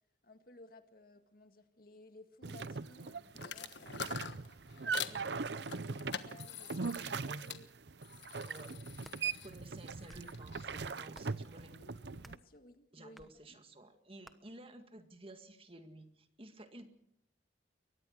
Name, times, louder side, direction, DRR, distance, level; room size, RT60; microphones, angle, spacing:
voice 1, 0.2-4.2 4.8-7.7 11.6-13.3, left 2 dB, 55° left, 8 dB, 1.9 m, -58 dB
sound 1, 2.4-12.4, right 5 dB, 65° right, 0.7 m, -40 dB
sound 2, 3.4-5.2 5.7-7.6 8.0-10.7, left 7 dB, 75° left, 1.4 m, -46 dB
voice 2, 8.5-8.9 9.2-11.8 12.9-16.9, right 1 dB, 30° right, 7 dB, 1.9 m, -54 dB
sound 3, 8.9-9.2 9.9-10.4 11.1-11.5 12.2-12.5 13.2-13.3 14.2-14.4, equal, ahead, 1.1 m, -57 dB
23.0 x 19.0 x 6.5 m, 0.77 s
head